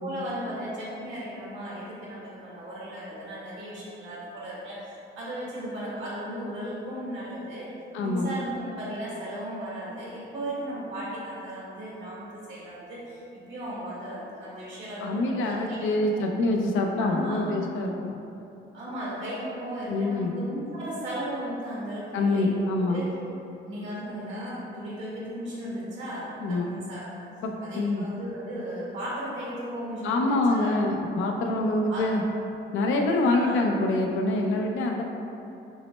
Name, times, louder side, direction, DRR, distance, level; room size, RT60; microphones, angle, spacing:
voice 1, 0.0-7.7 8.0-13.2 13.5-15.8 16.1-16.3 17.1-17.4 18.7-23.1 23.7-27.1 27.6-30.7 31.9-32.1 33.2-33.6, equal, 70° right, -7 dB, 1.5 m, -36 dB
voice 2, 7.9-8.3 15.0-18.1 19.9-20.3 22.1-23.0 26.4-26.7 27.4-28.1 30.0-32.2 32.7-35.0, left 2 dB, 75° left, 2 dB, 0.5 m, -25 dB
6.1 x 2.1 x 3.0 m, 2.8 s
cardioid pair, 90°, 20 cm